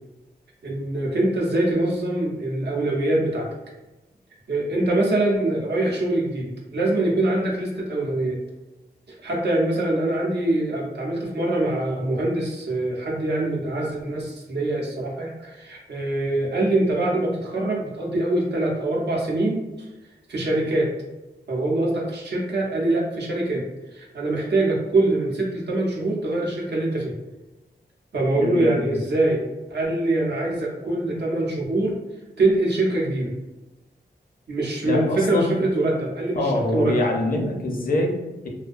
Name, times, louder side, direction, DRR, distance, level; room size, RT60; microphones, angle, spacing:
voice 1, 0.6-3.5 4.5-8.4 9.2-19.6 20.3-20.9 21.5-23.7 23.9-27.1 28.1-32.0 32.4-33.3 34.5-37.0, right 2 dB, 75° right, -3 dB, 0.7 m, -24 dB
voice 2, 28.4-29.0 34.8-35.6 36.3-38.5, left 2 dB, 55° left, 1 dB, 0.5 m, -25 dB
2.5 x 2.1 x 2.4 m, 1.0 s
wide cardioid pair, 115°, 17 cm